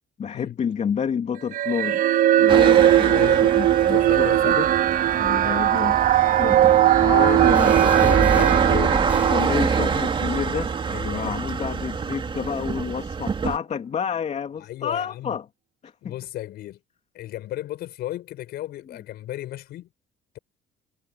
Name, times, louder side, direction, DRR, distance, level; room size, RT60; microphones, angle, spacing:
voice 1, 0.2-2.0 2.4-4.7 5.2-6.0 6.3-6.6 7.0-10.7 11.0-15.4 15.8-16.1, left 7 dB, 40° left, 3.1 m, -29 dB
sound 1, 1.5-11.0, right 12 dB, 55° right, 0.6 m, -19 dB
sound 2, 2.5-13.6, right 5 dB, 30° right, 3.0 m, -26 dB
voice 2, 2.6-4.6 10.9-11.4 14.6-15.4 16.0-16.8 17.1-19.9, left 14 dB, 75° left, 5.4 m, -35 dB
sound 3, 7.5-8.7 9.1-9.4, right 1 dB, 10° right, 6.4 m, -39 dB
cardioid pair, 110°, 17 cm